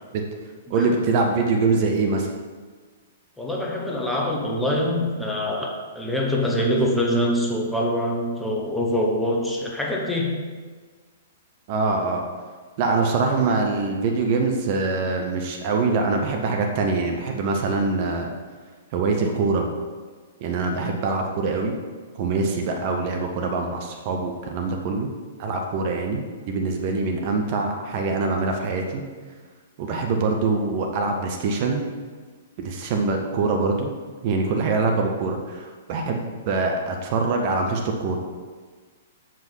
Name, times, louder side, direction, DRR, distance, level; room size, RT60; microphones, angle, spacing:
voice 1, 0.7-2.3 11.7-12.2 12.8-18.3 18.9-19.7 20.4-21.7 22.2-25.1 25.4-29.0 29.8-31.8 32.6-33.9 34.2-38.2, right 3 dB, 40° right, 2 dB, 1.0 m, -24 dB
voice 2, 3.4-10.4, left 1 dB, 5° left, -2 dB, 1.2 m, -24 dB
7.6 x 5.1 x 5.5 m, 1.5 s
figure-of-eight pair, 110°, 0 cm